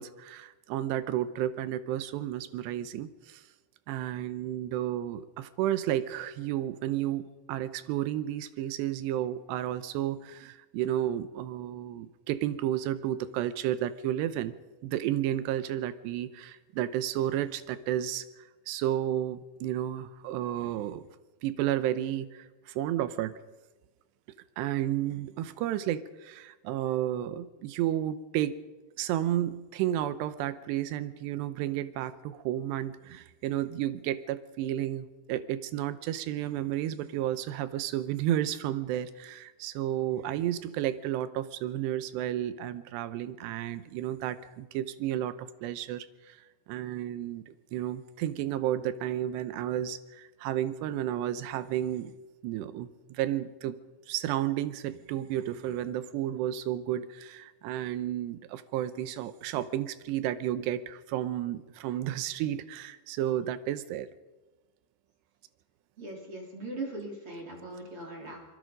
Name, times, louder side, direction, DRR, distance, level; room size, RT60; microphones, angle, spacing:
voice 1, 0.0-3.4 3.9-14.5 14.8-18.3 18.7-21.1 21.4-23.4 24.6-28.6 29.0-46.4 46.7-52.1 52.4-53.8 54.1-64.1, right 12 dB, 90° right, 13 dB, 3.0 m, -32 dB
voice 2, 66.0-68.4, right 2 dB, 35° right, 0 dB, 4.1 m, -40 dB
26.0 x 22.0 x 5.2 m, 1.1 s
omnidirectional pair, 4.8 m